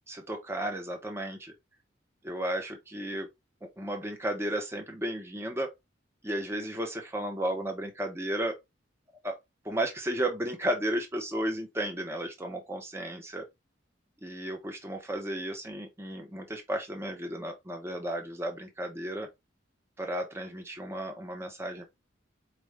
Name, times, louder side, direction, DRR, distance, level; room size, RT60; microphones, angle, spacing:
voice 1, 0.1-1.5 2.2-3.3 3.8-5.7 6.2-8.6 9.2-9.4 9.6-13.5 14.2-19.3 20.0-21.8, right 1 dB, 15° right, 0.7 m, -33 dB
4.4 x 2.5 x 3.2 m
head